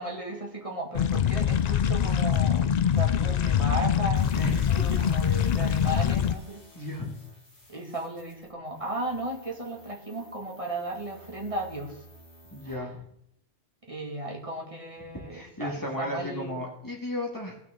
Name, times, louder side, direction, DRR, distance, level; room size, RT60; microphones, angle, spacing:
voice 1, 0.0-6.6 7.7-12.0 12.6-12.9 13.8-15.7 16.0-16.6, right 1 dB, 30° right, -1 dB, 2.1 m, -35 dB
sound 1, 0.9-6.3, left 8 dB, 60° left, 0.4 m, -24 dB
sound 2, 4.1-12.7, equal, 75° left, 2.5 m, -53 dB
voice 2, 4.3-5.0 6.7-7.1 12.5-13.0 15.3-17.6, left 1 dB, 15° left, -2 dB, 2.1 m, -35 dB
17.5 x 6.4 x 3.8 m, 0.74 s
omnidirectional pair, 1.2 m